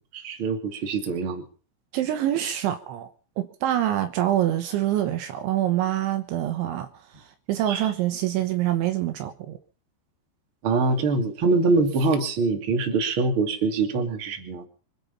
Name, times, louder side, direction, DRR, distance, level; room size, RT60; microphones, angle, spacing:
voice 1, 0.1-1.4 7.7-7.9 10.6-14.7, right 3 dB, 35° right, 2.7 m, -24 dB
voice 2, 1.9-3.1 3.4-9.6, right 12 dB, 75° right, 3.3 m, -26 dB
26.0 x 9.4 x 5.5 m
omnidirectional pair, 5.7 m